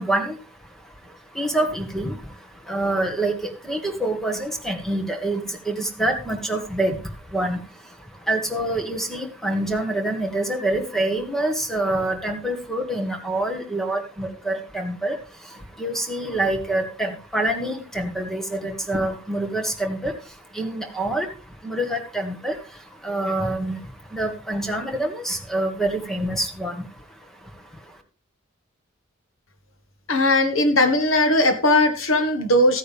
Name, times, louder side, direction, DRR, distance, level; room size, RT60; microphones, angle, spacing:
voice 1, 0.0-28.0, right 1 dB, ahead, 5 dB, 1.7 m, -27 dB
voice 2, 30.1-32.8, left 1 dB, 80° left, 8 dB, 1.8 m, -18 dB
14.0 x 9.3 x 3.6 m, 0.35 s
head